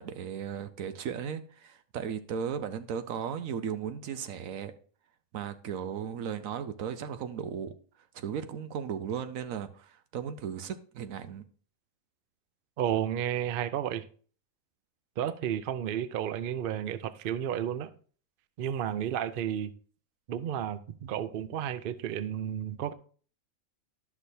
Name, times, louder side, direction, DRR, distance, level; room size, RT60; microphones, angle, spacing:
voice 1, 0.0-4.7 5.3-7.7 8.1-11.4, right 8 dB, 80° right, 1.1 m, -36 dB
voice 2, 12.8-14.1 15.2-17.9 18.6-19.7 20.3-22.9, right 10 dB, 60° right, 0.6 m, -32 dB
12.0 x 6.0 x 2.7 m
omnidirectional pair, 1.4 m